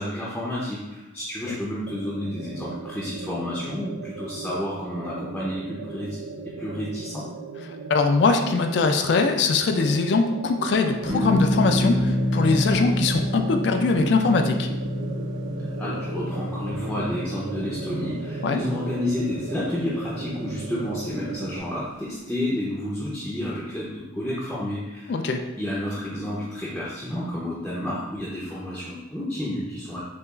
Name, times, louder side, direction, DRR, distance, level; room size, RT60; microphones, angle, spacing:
voice 1, 0.0-6.2 6.6-7.2 15.8-25.1 25.6-30.0, left 1 dB, 5° left, -8 dB, 0.5 m, -30 dB
sound 1, 1.9-21.6, right 4 dB, 90° right, 0.3 m, -37 dB
voice 2, 7.9-14.7 18.4-18.6 25.1-25.4, left 4 dB, 60° left, 6 dB, 0.3 m, -22 dB
sound 2, 11.1-21.6, left 1 dB, 35° right, 1.0 m, -29 dB
6.5 x 2.3 x 2.3 m, 1.0 s
head